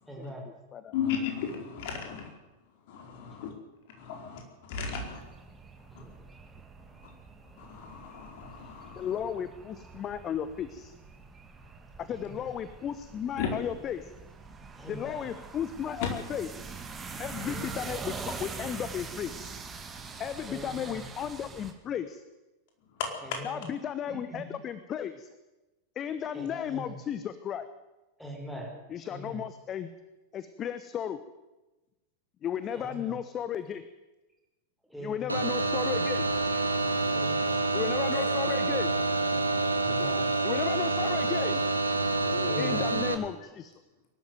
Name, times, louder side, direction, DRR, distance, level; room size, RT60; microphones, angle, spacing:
voice 1, 0.1-0.5 5.9-6.2 12.1-12.5 14.8-15.3 17.4-17.9 20.5-21.0 23.2-23.7 24.1-24.5 26.3-27.0 28.2-28.8 29.1-29.4 32.7-33.2 34.9-35.4 37.1-37.6 39.7-40.3 42.4-42.9, right 1 dB, ahead, 2 dB, 5.3 m, -42 dB
voice 2, 0.9-2.3 2.9-3.5 4.0-5.2 5.9-6.0 7.6-9.2 13.4-13.5 16.0-16.1 23.0-23.1 38.1-38.6 39.9-40.1 42.3-42.7, left 7 dB, 50° left, 3 dB, 4.6 m, -35 dB
sound 1, 5.0-21.7, right 4 dB, 15° right, 2.4 m, -44 dB
voice 3, 9.0-10.9 12.0-14.1 14.9-16.5 17.2-19.6 20.2-22.2 23.4-25.3 25.9-27.7 28.9-29.9 30.3-31.2 32.4-33.9 35.0-36.3 37.7-38.9 40.4-41.6 42.6-43.7, left 9 dB, 30° left, 13 dB, 1.0 m, -34 dB
sound 2, 35.3-43.1, right 3 dB, 85° right, 1.8 m, -27 dB
22.0 x 12.5 x 9.4 m, 1.1 s
figure-of-eight pair, 90°, 0 cm